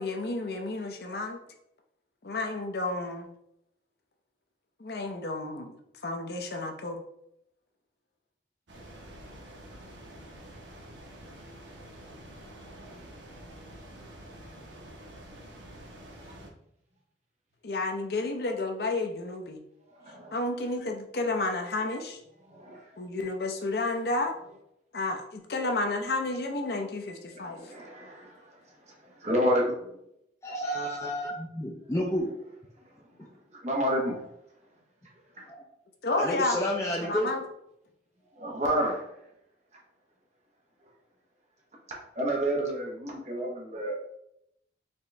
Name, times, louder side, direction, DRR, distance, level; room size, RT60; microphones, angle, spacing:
voice 1, 0.0-1.4 2.2-3.3 4.8-7.0 17.6-19.6 20.3-22.2 23.0-24.3 24.9-27.6 36.0-36.6 37.0-37.4, left 2 dB, 60° left, 4 dB, 0.6 m, -31 dB
sound 1, 8.7-16.5, right 1 dB, 85° right, 0.9 m, -47 dB
voice 2, 19.9-20.4 22.4-22.8 27.3-30.0 33.2-34.3 35.4-35.5 38.3-39.1 41.9-43.9, equal, 40° right, -1 dB, 1.0 m, -31 dB
voice 3, 30.4-32.4 35.5-35.6 36.2-37.3, equal, 15° left, -2 dB, 0.4 m, -30 dB
4.3 x 3.0 x 3.3 m, 0.78 s
head